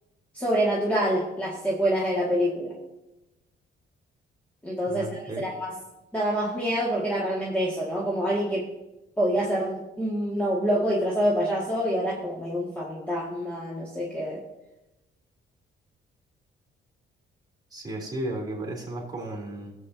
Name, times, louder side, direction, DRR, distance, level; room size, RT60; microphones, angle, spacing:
voice 1, 0.3-2.7 4.6-5.7 6.1-8.7 9.2-14.4, equal, 5° left, -5 dB, 2.0 m, -26 dB
voice 2, 4.9-5.4 17.7-19.7, right 1 dB, 20° right, -1 dB, 3.4 m, -34 dB
16.5 x 7.9 x 2.8 m, 0.98 s
cardioid pair, 90°, 20 cm